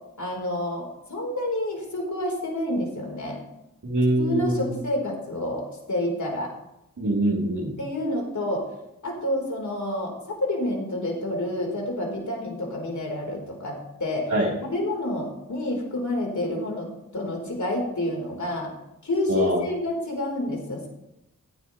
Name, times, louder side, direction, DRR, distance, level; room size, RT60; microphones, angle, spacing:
voice 1, 0.2-3.4 4.2-6.5 7.8-8.6 9.0-14.3 14.6-18.7 19.0-20.9, left 1 dB, 55° left, 0 dB, 4.2 m, -29 dB
voice 2, 3.8-4.7 7.0-7.7 14.3-14.5 19.3-19.6, right 1 dB, 60° right, -5 dB, 3.8 m, -23 dB
15.5 x 9.5 x 3.2 m, 0.86 s
cardioid pair, 45°, 34 cm